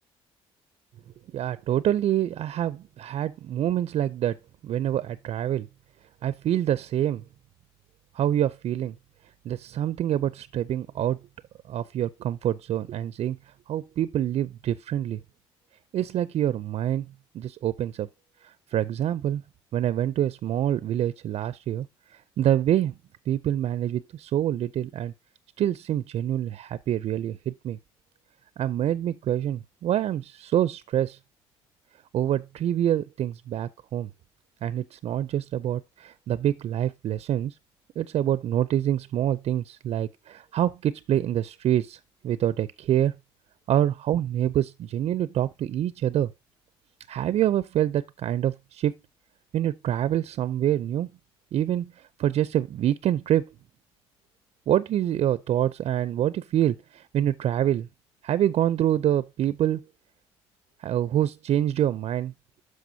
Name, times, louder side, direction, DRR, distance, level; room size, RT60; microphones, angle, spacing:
voice 1, 1.3-4.4 4.6-5.7 6.2-7.2 8.1-9.0 9.4-11.2 11.7-13.4 13.7-15.2 15.9-17.1 17.3-18.1 18.4-19.4 19.7-21.9 22.1-22.9 23.3-25.1 25.6-27.8 28.6-31.2 32.1-34.1 34.6-37.6 38.0-43.1 43.7-46.3 47.1-48.9 49.5-51.1 51.5-53.5 54.7-57.9 58.2-59.8 60.8-62.3, right 11 dB, 60° right, 0.5 m, -26 dB
12.5 x 4.8 x 2.7 m
supercardioid pair, 70°, 12 cm